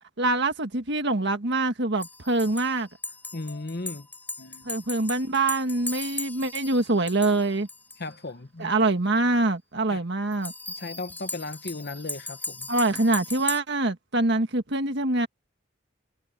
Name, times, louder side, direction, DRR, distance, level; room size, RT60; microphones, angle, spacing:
voice 1, 0.2-2.9 4.6-7.7 8.6-10.5 12.7-15.3, right 2 dB, 60° right, 1.7 m, -24 dB
sound 1, 2.0-8.1 10.3-13.6, left 3 dB, 10° left, 4.7 m, -37 dB
voice 2, 3.3-4.1 4.4-4.7 8.0-8.7 9.9-10.0 10.8-12.7, left 2 dB, 55° left, 1.3 m, -36 dB
head